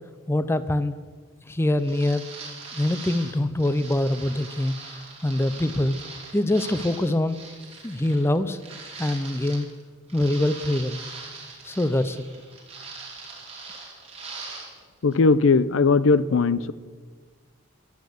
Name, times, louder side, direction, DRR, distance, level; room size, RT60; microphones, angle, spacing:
voice 1, 0.3-0.9 1.5-2.2 2.7-4.7 5.2-6.0 6.3-7.4 7.8-8.6 9.0-9.7 10.1-11.0 11.6-12.2, left 1 dB, 10° left, 13 dB, 0.5 m, -24 dB
sound 1, 1.8-9.8 10.1-14.8 15.1-15.2, right 4 dB, 30° right, 2.8 m, -41 dB
voice 2, 15.0-16.7, left 4 dB, 85° left, 16 dB, 0.5 m, -19 dB
14.5 x 10.5 x 6.5 m, 1.5 s
head